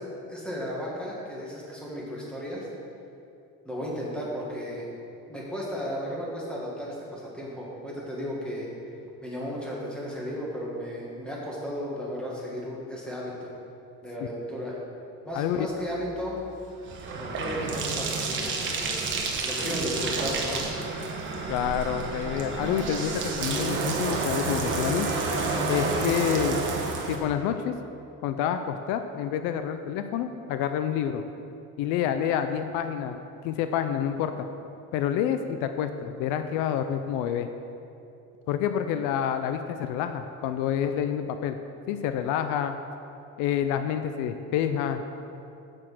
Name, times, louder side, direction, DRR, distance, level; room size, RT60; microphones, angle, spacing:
voice 1, 0.0-2.7 3.7-4.9 5.3-8.7 9.2-13.5 14.0-14.8 15.2-16.4 17.2-19.0 19.4-20.6, equal, 5° left, -5 dB, 1.9 m, -34 dB
voice 2, 15.3-15.7 21.5-25.1 25.7-26.6 27.1-27.7 28.2-31.2 31.8-33.2 33.4-34.3 34.9-37.5 38.5-41.6 41.9-42.7 43.4-45.0, left 9 dB, 80° left, 8 dB, 0.6 m, -28 dB
Bathtub (filling or washing), 15.8-27.2, right 3 dB, 40° right, 1.2 m, -30 dB
6.6 x 6.3 x 7.6 m, 2.7 s
cardioid pair, 150°, 31 cm